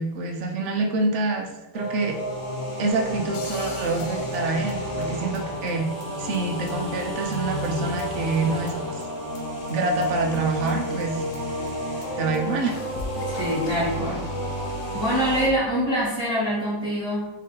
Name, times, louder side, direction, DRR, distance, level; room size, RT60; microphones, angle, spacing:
voice 1, 0.0-1.5 1.7-2.2 2.8-5.9 6.2-9.0 9.7-11.2 12.2-12.8, right 3 dB, 65° right, 3 dB, 0.9 m, -26 dB
sound 1, 1.7-15.5, equal, 55° left, 1.6 m, -31 dB
sound 2, 3.3-5.4 5.7-5.8 6.0-6.1 6.3-6.4 6.7-6.8 7.0-7.1 7.3-7.4 7.6-8.4 8.7-8.8 9.0-9.1 9.3-9.4 9.7-9.8 10.0-10.1 10.3-10.4 10.7-10.8 11.0-11.1 11.3-11.4 11.7-11.8 12.0-12.1 12.3-12.4 12.7-14.0, left 4 dB, 70° left, 1.0 m, -41 dB
voice 2, 13.3-14.3 14.9-17.3, equal, 45° right, -9 dB, 1.2 m, -25 dB
3.8 x 3.2 x 3.8 m, 1.0 s
omnidirectional pair, 1.5 m